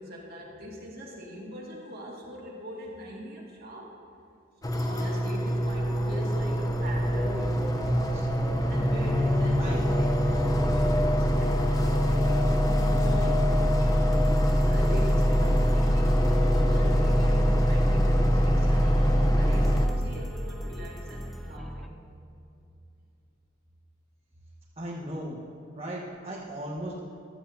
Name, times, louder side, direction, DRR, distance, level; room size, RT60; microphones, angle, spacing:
voice 1, 0.0-3.9 4.8-7.9 8.7-12.5 12.7-14.1 14.5-22.0, equal, 50° right, -4 dB, 2.2 m, -41 dB
sound 1, 4.6-19.9, equal, 20° left, 0.8 m, -23 dB
sound 2, 14.1-21.9, equal, ahead, 0.5 m, -41 dB
voice 2, 24.8-25.4 25.7-26.9, right 1 dB, 30° right, -6 dB, 1.4 m, -36 dB
16.0 x 12.5 x 2.8 m, 2.6 s
head